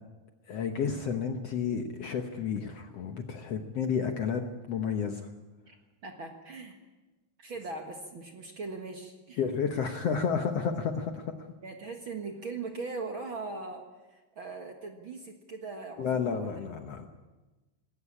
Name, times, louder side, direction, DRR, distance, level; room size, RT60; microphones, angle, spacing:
voice 1, 0.5-4.4 4.7-5.3 9.4-11.4 16.0-17.1, left 6 dB, 60° left, 5 dB, 1.7 m, -31 dB
voice 2, 6.0-6.8 7.4-9.4 11.6-13.8 14.1-16.6, right 3 dB, 45° right, 4 dB, 1.9 m, -40 dB
19.5 x 17.0 x 9.9 m, 1.2 s
omnidirectional pair, 4.0 m